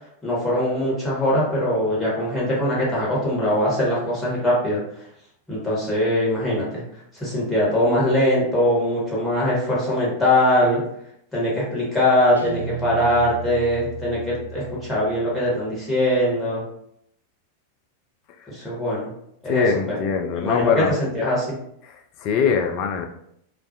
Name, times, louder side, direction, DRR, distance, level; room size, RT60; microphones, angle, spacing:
voice 1, 0.2-4.8 5.5-6.8 7.1-10.8 11.3-16.6 18.5-19.1 19.4-19.6 20.4-20.7 21.0-21.5, left 1 dB, 5° left, -7 dB, 1.1 m, -22 dB
Guitar, 12.3-15.6, right 7 dB, 75° right, 0.3 m, -35 dB
voice 2, 19.5-21.0 21.8-23.1, left 6 dB, 40° left, 4 dB, 0.3 m, -23 dB
2.3 x 2.0 x 2.7 m, 0.73 s
figure-of-eight pair, 90°, 0 cm